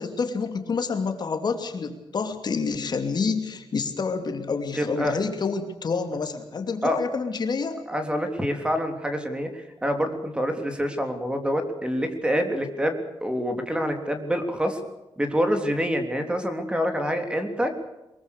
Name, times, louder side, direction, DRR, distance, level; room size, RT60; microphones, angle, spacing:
voice 1, 0.0-7.8, left 5 dB, 45° left, 6 dB, 2.7 m, -28 dB
voice 2, 4.7-5.2 6.8-7.0 7.9-14.8 15.2-17.7, equal, 10° right, 6 dB, 3.4 m, -26 dB
23.0 x 22.5 x 6.7 m, 0.96 s
wide cardioid pair, 130°, 10 cm